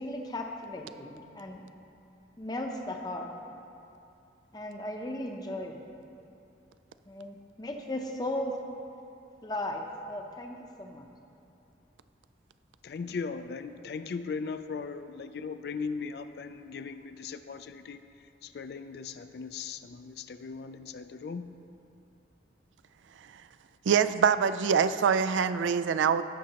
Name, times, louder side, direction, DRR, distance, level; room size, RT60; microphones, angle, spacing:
voice 1, 0.0-1.7 2.4-3.3 4.5-5.8 7.1-8.5 9.4-11.1, left 1 dB, 20° left, 2 dB, 0.6 m, -36 dB
voice 2, 12.8-21.5, left 5 dB, 55° left, 10 dB, 0.3 m, -38 dB
voice 3, 23.9-26.2, right 7 dB, 85° right, 13 dB, 0.3 m, -24 dB
16.5 x 6.2 x 2.9 m, 2.7 s
head